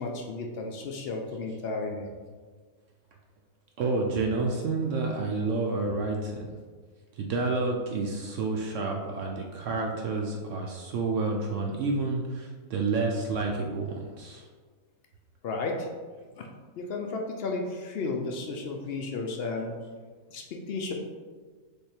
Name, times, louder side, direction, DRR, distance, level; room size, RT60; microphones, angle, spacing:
voice 1, 0.0-2.1 15.4-15.9 16.4-16.5 16.8-19.7 20.3-20.9, left 3 dB, 70° left, 2 dB, 0.6 m, -33 dB
voice 2, 3.8-6.5 7.1-14.4, right 3 dB, 70° right, 0 dB, 0.8 m, -29 dB
3.6 x 3.5 x 4.3 m, 1.5 s
omnidirectional pair, 1.6 m